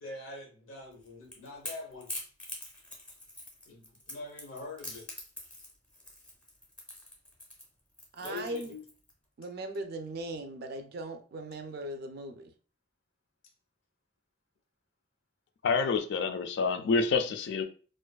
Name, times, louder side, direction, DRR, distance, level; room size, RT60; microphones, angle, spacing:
voice 1, 0.0-2.1 3.7-5.0 8.2-8.8 17.2-17.3, left 3 dB, 85° left, 2 dB, 0.8 m, -44 dB
Crackle / Crack, 0.9-9.1, left 1 dB, 5° left, 0.6 m, -44 dB
voice 2, 8.1-8.7 9.4-12.5, right 1 dB, 50° right, 7 dB, 0.3 m, -39 dB
voice 3, 15.6-17.7, left 4 dB, 60° left, 7 dB, 0.3 m, -27 dB
2.5 x 2.2 x 2.2 m, 0.40 s
head